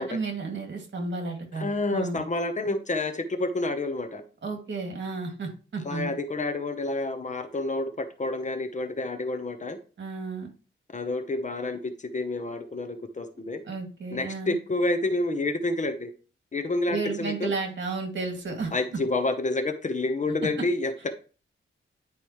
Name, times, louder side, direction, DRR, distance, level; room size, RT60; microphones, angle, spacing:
voice 1, 0.0-2.2 4.4-6.1 10.0-10.5 13.7-14.6 16.9-18.7, right 3 dB, 60° right, 2 dB, 2.4 m, -32 dB
voice 2, 1.5-4.2 5.8-9.8 10.9-13.6 14.1-16.1 16.5-17.5 18.7-20.9, left 2 dB, 35° left, 9 dB, 0.9 m, -29 dB
10.0 x 5.1 x 3.1 m, 0.36 s
wide cardioid pair, 130°, 21 cm